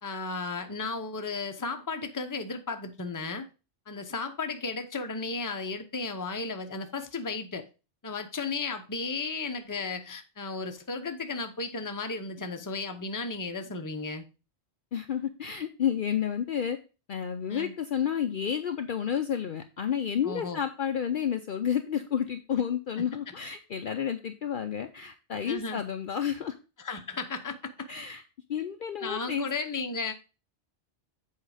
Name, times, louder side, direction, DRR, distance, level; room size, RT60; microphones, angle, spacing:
voice 1, 0.0-3.5 3.9-7.7 8.0-14.2 17.5-17.7 20.2-20.6 25.5-25.8 26.8-27.9 29.0-30.1, left 4 dB, 20° left, 0.7 m, -34 dB
voice 2, 14.9-16.8 17.1-26.6 27.9-28.2 28.5-29.5, left 8 dB, 55° left, 0.7 m, -30 dB
7.7 x 4.5 x 4.8 m
omnidirectional pair, 1.2 m